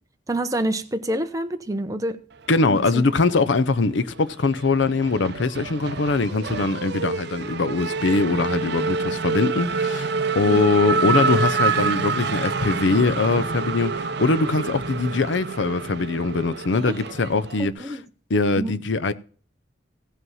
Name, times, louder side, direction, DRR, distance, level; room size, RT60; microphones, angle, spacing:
voice 1, 0.3-2.2 2.7-3.0 10.4-10.6 17.6-18.0 18.6-18.8, right 1 dB, 20° right, 0.8 m, -27 dB
voice 2, 2.5-18.0 18.3-19.1, left 3 dB, 70° left, 0.6 m, -22 dB
Race car auto racing / Accelerating revving vroom, 2.7-3.7 4.0-17.7, right 4 dB, 60° right, 0.7 m, -27 dB
15.5 x 5.5 x 5.5 m
head